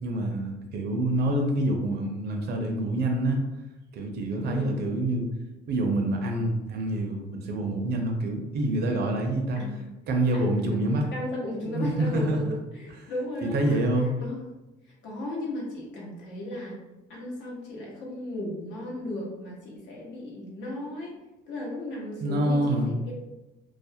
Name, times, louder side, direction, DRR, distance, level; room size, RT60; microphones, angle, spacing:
voice 1, 0.0-3.4 3.9-5.3 5.7-9.6 10.1-11.0 11.6-12.5 13.0-13.1 13.4-14.1 22.2-22.9, right 1 dB, 60° right, 2 dB, 0.5 m, -26 dB
voice 2, 4.4-4.7 9.6-9.9 10.3-13.8 14.2-14.4 14.8-16.8 17.1-21.2 21.5-23.1, left 1 dB, 80° left, -3 dB, 0.9 m, -35 dB
2.4 x 2.0 x 2.7 m, 1.0 s
cardioid pair, 110°, 19 cm